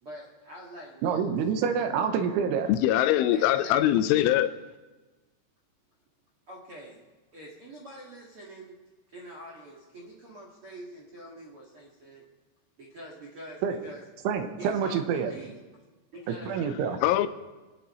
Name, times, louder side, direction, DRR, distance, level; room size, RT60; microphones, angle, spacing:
voice 1, 0.0-1.5 3.3-4.4 6.5-7.0 7.3-8.7 9.1-12.2 12.8-14.0 14.6-15.6 16.1-16.5, right 1 dB, 55° right, -3 dB, 1.5 m, -45 dB
voice 2, 1.0-2.7 13.6-13.8 14.2-15.3 16.3-17.0, right 7 dB, 80° right, 7 dB, 3.3 m, -27 dB
voice 3, 2.7-4.5 16.6-17.3, left 13 dB, 85° left, 11 dB, 3.1 m, -23 dB
25.0 x 9.4 x 4.3 m, 1.2 s
omnidirectional pair, 5.7 m